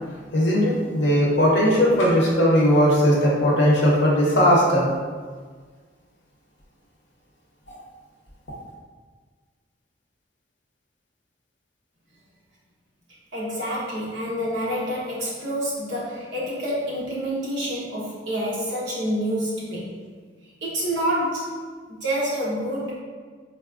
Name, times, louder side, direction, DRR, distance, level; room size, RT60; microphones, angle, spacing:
voice 1, 0.3-4.9, equal, 65° left, -4 dB, 0.7 m, -18 dB
voice 2, 13.3-19.9 20.6-21.6 21.9-22.9, equal, 60° right, -6 dB, 0.9 m, -27 dB
3.9 x 2.3 x 2.4 m, 1.5 s
head